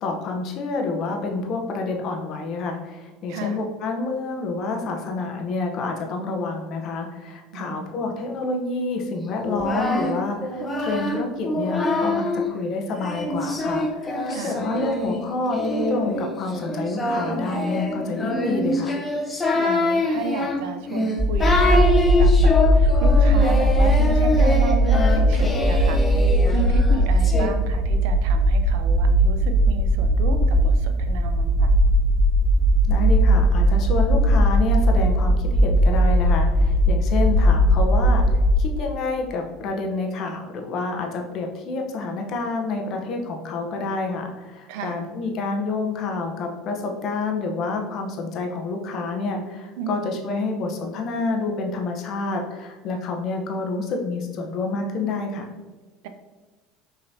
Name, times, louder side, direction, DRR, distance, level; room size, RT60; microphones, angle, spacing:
voice 1, 0.0-18.9 32.9-38.3 38.6-55.5, left 3 dB, 55° left, 2 dB, 0.8 m, -28 dB
voice 2, 3.3-3.6 7.5-7.9 14.3-14.6 19.5-31.7 44.7-45.0 49.8-50.2, right 6 dB, 70° right, 7 dB, 0.5 m, -33 dB
Singing, 9.4-12.4 13.0-27.5, left 2 dB, 20° left, 0.8 m, -25 dB
sound 1, 21.2-38.6, equal, 10° right, 0.5 m, -18 dB
5.7 x 3.1 x 2.7 m, 1.3 s
hypercardioid pair, 75°, 0 cm